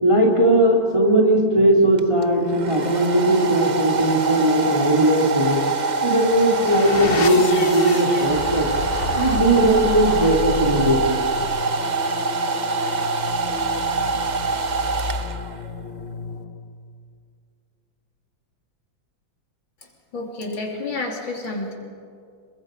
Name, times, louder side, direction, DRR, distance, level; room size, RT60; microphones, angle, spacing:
voice 1, 0.0-5.6 6.0-8.7 9.1-11.2 11.7-11.8 12.2-13.0, right 1 dB, 15° right, -1 dB, 2.8 m, -19 dB
Domestic sounds home sounds, 2.0-15.7, right 4 dB, 80° right, 0.4 m, -25 dB
sound 1, 6.1-16.8, left 5 dB, 45° left, 0.7 m, -31 dB
voice 2, 20.1-21.7, left 2 dB, 70° left, 0 dB, 3.9 m, -29 dB
27.0 x 22.5 x 5.2 m, 2.3 s
omnidirectional pair, 2.2 m